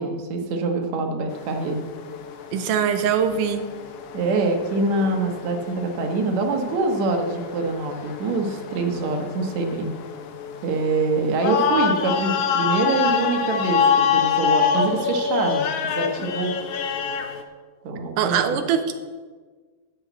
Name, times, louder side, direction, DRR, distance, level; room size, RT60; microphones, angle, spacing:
voice 1, 0.0-1.8 4.1-9.9 10.6-16.6 17.8-18.6, right 3 dB, 60° right, 3 dB, 2.3 m, -25 dB
sound 1, 1.3-17.4, left 6 dB, 85° left, 1.3 m, -26 dB
voice 2, 2.5-3.7 18.2-18.9, right 8 dB, 75° right, 8 dB, 2.2 m, -22 dB
12.5 x 5.7 x 8.1 m, 1.4 s
omnidirectional pair, 4.0 m